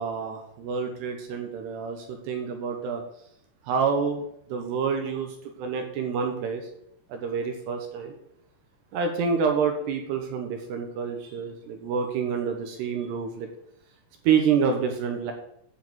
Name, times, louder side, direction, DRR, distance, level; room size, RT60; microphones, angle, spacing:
voice 1, 0.0-3.0 3.7-4.2 4.5-6.6 7.1-8.1 8.9-13.5 14.2-15.3, right 6 dB, 70° right, 4 dB, 2.7 m, -27 dB
10.5 x 4.9 x 7.8 m, 0.72 s
omnidirectional pair, 5.8 m